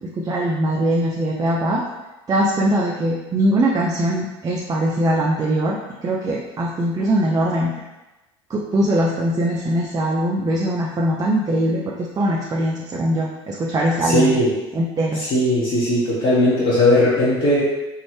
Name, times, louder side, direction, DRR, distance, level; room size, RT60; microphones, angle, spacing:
voice 1, 0.0-1.8 2.3-7.7 8.5-14.4 14.7-15.2, right 1 dB, 30° right, -2 dB, 0.6 m, -21 dB
voice 2, 14.0-14.5 15.3-17.6, left 1 dB, 50° left, -9 dB, 1.4 m, -18 dB
4.6 x 2.6 x 3.2 m, 1.1 s
supercardioid pair, 80°, 14 cm